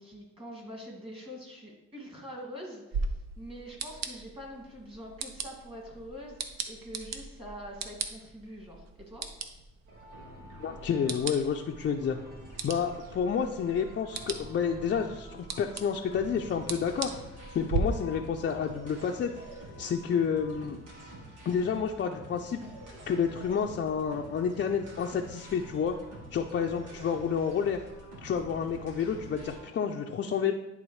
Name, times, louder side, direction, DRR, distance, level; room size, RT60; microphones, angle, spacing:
voice 1, 0.0-9.3, equal, 20° right, -1 dB, 2.1 m, -45 dB
sound 1, 2.9-17.8, right 5 dB, 60° right, 0.7 m, -40 dB
sound 2, 9.9-29.6, right 1 dB, 90° right, 1.5 m, -47 dB
voice 2, 10.6-12.2 12.6-17.1 17.5-19.3 19.8-20.8 21.5-22.6 23.1-26.0 26.3-27.8 28.2-30.5, left 7 dB, 40° left, 2 dB, 0.4 m, -29 dB
10.5 x 3.5 x 3.1 m, 0.98 s
cardioid pair, 90°, 30 cm